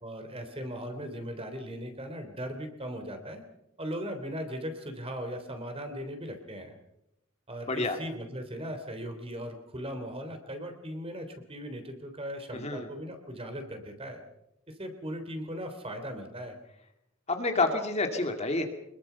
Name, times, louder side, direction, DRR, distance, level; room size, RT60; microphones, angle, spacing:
voice 1, 0.0-3.4 3.8-6.8 7.5-14.2 14.7-16.6, equal, 25° right, 6 dB, 3.4 m, -38 dB
voice 2, 12.5-12.9 17.3-18.7, left 3 dB, 30° left, 5 dB, 2.3 m, -28 dB
25.5 x 21.5 x 5.8 m, 0.83 s
head